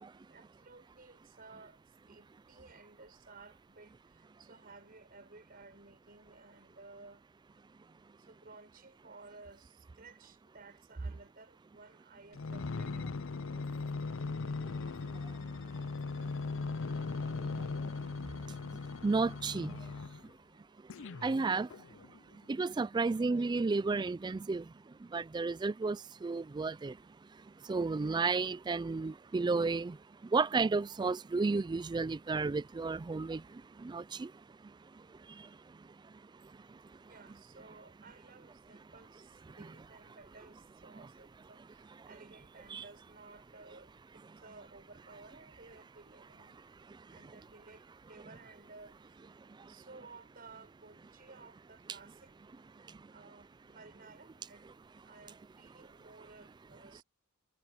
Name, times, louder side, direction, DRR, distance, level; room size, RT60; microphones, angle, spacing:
voice 1, 0.3-7.2 8.1-13.1 13.7-13.8 14.9-15.0 36.4-36.6 37.0-46.6 47.1-49.3 49.7-52.3 53.1-54.7 55.0-57.0, right 3 dB, 45° right, 7.2 m, -56 dB
sound 1, 12.3-20.3 20.9-22.2 22.8-22.9, left 4 dB, 65° left, 0.5 m, -39 dB
voice 2, 17.4-17.9 18.2-19.9 21.2-21.7 22.3-27.0 27.6-34.3 34.6-36.1 36.4-36.8 39.5-39.6 42.7-42.8 46.9-47.1 49.5-49.7 52.9-53.1, right 4 dB, 20° right, 0.3 m, -34 dB
head